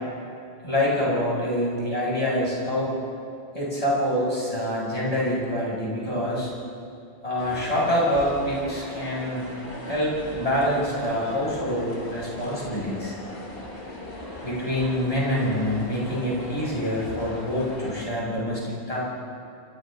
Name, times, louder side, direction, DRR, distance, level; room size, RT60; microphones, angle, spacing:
voice 1, 0.6-2.9 3.5-6.5 7.2-9.5 9.8-13.1 14.4-19.0, equal, 30° left, -7 dB, 7.7 m, -26 dB
sound 1, 7.4-18.0, left 1 dB, 50° left, 3.5 m, -38 dB
29.0 x 26.5 x 4.1 m, 2.5 s
omnidirectional pair, 1.3 m